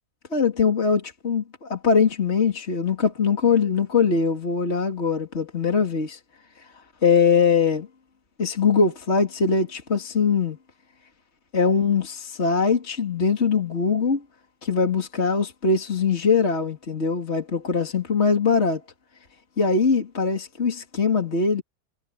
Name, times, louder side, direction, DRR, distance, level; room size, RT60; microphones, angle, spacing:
voice 1, 0.3-6.2 7.0-7.9 8.4-10.6 11.5-14.2 14.6-18.8 19.6-21.6, left 5 dB, 40° left, 2.9 m, -22 dB
omnidirectional pair, 1.7 m